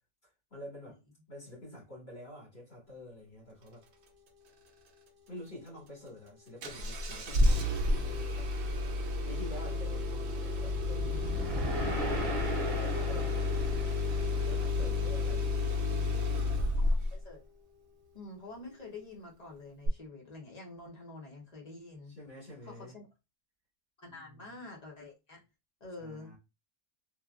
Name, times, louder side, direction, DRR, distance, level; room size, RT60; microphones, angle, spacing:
voice 1, 0.5-1.0 1.3-3.8 5.3-8.5 9.3-16.9 22.1-23.0 24.1-24.5 26.0-26.4, left 1 dB, 55° left, 1.9 m, -49 dB
Engine starting, 6.6-17.2 19.9-20.0, left 2 dB, 65° right, 0.9 m, -31 dB
sound 1, 10.6-14.9, right 1 dB, 30° right, 1.0 m, -37 dB
voice 2, 16.8-17.4 18.1-22.2 22.6-23.1 24.0-25.4 25.8-26.3, left 2 dB, 35° left, 0.9 m, -47 dB
3.1 x 2.3 x 2.3 m
omnidirectional pair, 1.3 m